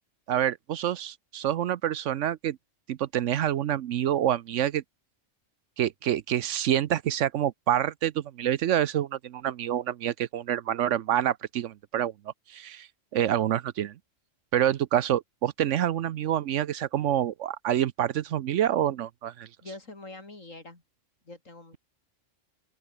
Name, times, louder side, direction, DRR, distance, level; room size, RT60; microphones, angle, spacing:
voice 1, 0.3-2.6 2.9-4.8 5.8-12.1 12.5-12.9 13.1-13.9 14.5-19.5, right 11 dB, 75° right, 1.0 m, -27 dB
voice 2, 19.6-20.8 21.2-21.8, left 2 dB, 90° left, 5.0 m, -44 dB
open air
omnidirectional pair, 1.3 m